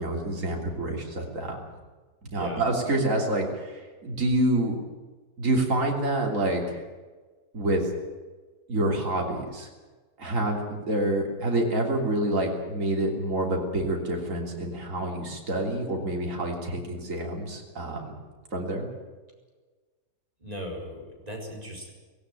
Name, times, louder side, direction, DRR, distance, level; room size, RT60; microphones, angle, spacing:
voice 1, 0.0-1.6 2.2-4.8 5.4-6.8 7.5-7.9 8.7-9.7 10.2-18.2 18.5-18.9, right 1 dB, 55° right, 1 dB, 3.5 m, -27 dB
voice 2, 2.3-2.6 20.4-21.9, equal, 25° right, 0 dB, 4.8 m, -37 dB
18.0 x 17.0 x 9.2 m, 1.3 s
omnidirectional pair, 1.6 m